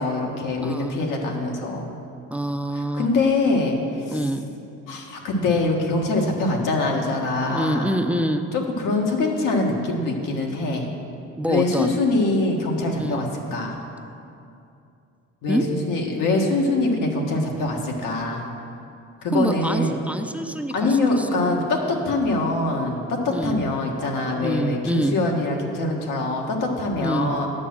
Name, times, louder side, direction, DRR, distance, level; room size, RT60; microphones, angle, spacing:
voice 1, 0.0-1.9 2.7-4.2 4.9-7.9 8.5-10.9 11.5-13.8 15.4-18.5 19.2-20.0 20.7-27.5, left 2 dB, 80° left, 0 dB, 1.6 m, -24 dB
voice 2, 0.6-1.0 2.3-3.1 4.1-4.5 7.5-8.5 11.4-11.9 13.0-13.3 15.5-15.6 19.3-21.3 21.8-22.0 23.3-23.6 24.4-25.2 27.0-27.3, right 1 dB, 5° right, 7 dB, 0.5 m, -25 dB
9.7 x 7.5 x 6.1 m, 2.6 s
cardioid pair, 95°, 32 cm